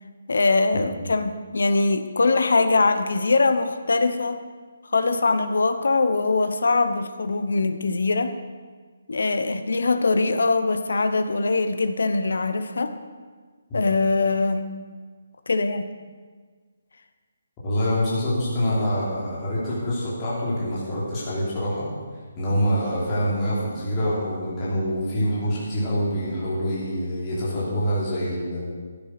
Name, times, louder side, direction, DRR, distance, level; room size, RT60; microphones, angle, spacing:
voice 1, 0.3-4.4 4.9-8.3 9.1-12.9 13.7-14.7 15.5-15.9, left 3 dB, 75° left, 9 dB, 1.0 m, -22 dB
voice 2, 17.6-21.9 22.3-28.6, equal, 15° left, -9 dB, 3.2 m, -25 dB
12.5 x 9.8 x 6.0 m, 1.5 s
hypercardioid pair, 180°, 0 cm